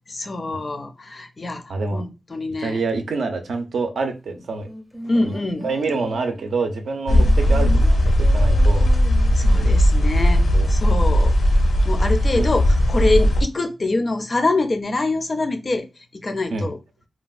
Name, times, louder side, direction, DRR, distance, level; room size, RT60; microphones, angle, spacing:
voice 1, 0.1-2.8 5.0-5.7 7.1-7.3 9.3-11.3 11.8-15.9 16.2-16.8, left 2 dB, 35° left, 0.4 m, -25 dB
voice 2, 1.7-2.0 2.6-4.7 5.2-5.3 5.6-7.7 8.0-8.9 10.5-10.7 12.3-12.5 16.5-16.7, right 3 dB, 80° right, 0.5 m, -26 dB
sound 1, 4.7-6.6 7.2-9.6 9.9-10.0, right 1 dB, 15° right, 0.6 m, -36 dB
sound 2, 7.1-13.4, equal, 85° left, 0.6 m, -17 dB
3.3 x 2.2 x 2.3 m
wide cardioid pair, 120°, 0 cm